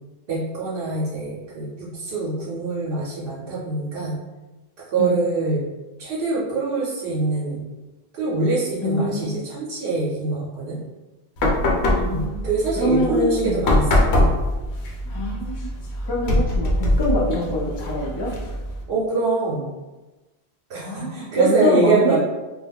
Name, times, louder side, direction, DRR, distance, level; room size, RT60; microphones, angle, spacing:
voice 1, 0.3-4.2 4.9-5.6 6.0-7.6 8.1-10.8 12.1-14.3 18.9-19.7 20.7-22.2, right 3 dB, 70° right, -6 dB, 0.8 m, -24 dB
voice 2, 8.8-9.3 11.9-12.4 12.7-13.6 15.1-15.7 16.1-18.3 20.7-22.2, left 1 dB, 35° left, -3 dB, 0.5 m, -24 dB
sound 1, 11.4-18.8, left 1 dB, 90° left, 0.9 m, -23 dB
2.3 x 2.1 x 3.4 m, 1.1 s
omnidirectional pair, 1.1 m